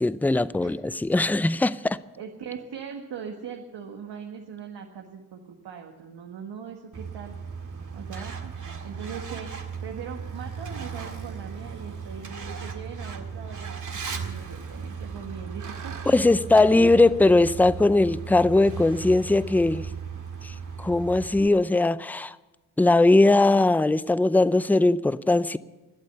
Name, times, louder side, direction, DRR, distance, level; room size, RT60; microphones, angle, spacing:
voice 1, 0.0-2.0 16.1-19.9 20.4-22.4 22.8-25.6, left 2 dB, 5° left, 0.5 m, -20 dB
voice 2, 2.2-7.3 7.9-8.5 8.8-13.8 14.1-16.0, right 7 dB, 70° right, 1.7 m, -40 dB
Truck, 6.9-21.5, right 6 dB, 45° right, 2.0 m, -36 dB
24.0 x 8.4 x 6.9 m
supercardioid pair, 50°, 43 cm